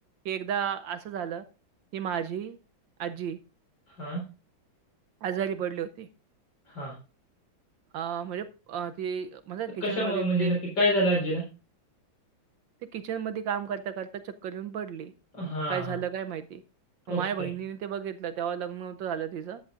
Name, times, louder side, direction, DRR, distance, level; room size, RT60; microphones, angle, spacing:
voice 1, 0.2-1.4 1.9-2.6 3.0-3.4 5.2-6.1 7.9-10.6 12.9-15.1 15.7-16.6 17.1-19.6, right 8 dB, 75° right, 10 dB, 1.4 m, -33 dB
voice 2, 9.8-11.4 15.3-16.0 17.1-17.5, equal, 65° left, -3 dB, 4.9 m, -27 dB
13.5 x 10.5 x 2.5 m, 0.34 s
omnidirectional pair, 2.2 m